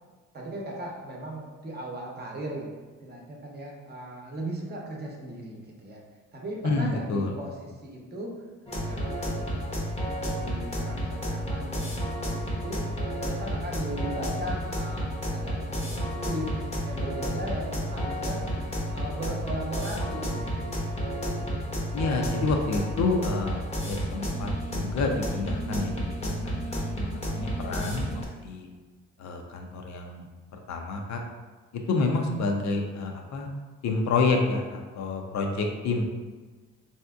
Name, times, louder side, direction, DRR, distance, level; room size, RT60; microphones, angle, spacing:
voice 1, 0.3-6.0 6.3-8.3 8.8-9.7 10.2-12.8 13.1-18.4 18.9-20.9 35.6-35.8, right 1 dB, 35° right, -1 dB, 0.7 m, -38 dB
voice 2, 6.6-7.4 21.9-25.9 26.2-26.9 27.3-28.1 28.4-28.7 29.2-30.3 30.7-31.2 31.7-33.5 33.8-36.0, left 3 dB, 65° left, 3 dB, 0.5 m, -28 dB
sound 1, 8.7-28.2, equal, 20° left, 0.7 m, -31 dB
3.4 x 2.7 x 2.3 m, 1.4 s
cardioid pair, 90°, 30 cm